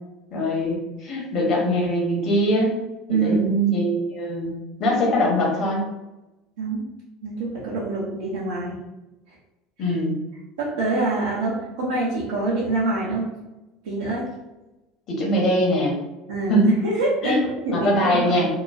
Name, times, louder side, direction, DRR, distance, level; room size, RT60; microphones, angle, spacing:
voice 1, 0.3-2.7 3.1-4.5 4.8-5.9 9.8-10.2 15.1-15.9 16.5-16.7 17.2-17.4 17.7-18.5, equal, 45° left, -2 dB, 1.0 m, -22 dB
voice 2, 3.1-3.5 6.6-6.8 7.2-8.8 10.6-13.3 13.8-14.3 16.3-18.5, right 2 dB, 70° right, -8 dB, 0.6 m, -25 dB
3.0 x 2.1 x 2.3 m, 1.0 s
figure-of-eight pair, 70°, 0 cm